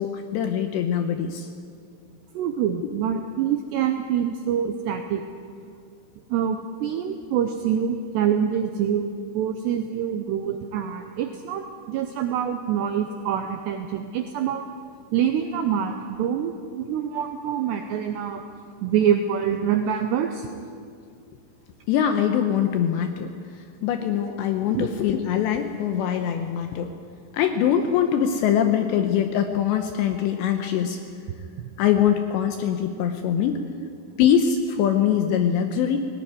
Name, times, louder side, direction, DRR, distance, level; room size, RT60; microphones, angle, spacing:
voice 1, 0.0-1.5 21.9-23.3 23.6-26.9 27.3-31.0 31.8-33.6 34.2-36.0, left 9 dB, 80° left, 6 dB, 2.6 m, -23 dB
voice 2, 2.3-5.2 6.3-14.7 15.1-18.4 18.8-20.5 24.7-24.9, right 8 dB, 90° right, 6 dB, 2.4 m, -25 dB
18.5 x 18.0 x 9.6 m, 2.3 s
omnidirectional pair, 5.9 m